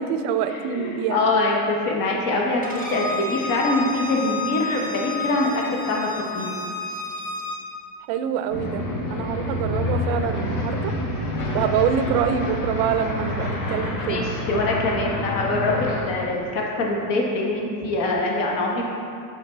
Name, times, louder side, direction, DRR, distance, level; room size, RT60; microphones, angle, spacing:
voice 1, 0.0-1.2 8.1-8.8 9.1-10.9 11.5-14.3, right 8 dB, 60° right, 8 dB, 0.5 m, -25 dB
voice 2, 0.7-6.1 6.3-6.5 14.1-18.8, left 2 dB, 40° left, -1 dB, 1.0 m, -24 dB
Bowed string instrument, 2.6-7.6, left 3 dB, 15° left, 0.7 m, -31 dB
sound 1, 8.5-16.0, left 2 dB, 60° left, 1.3 m, -27 dB
9.0 x 5.0 x 3.3 m, 2.4 s
cardioid pair, 165°, 50 cm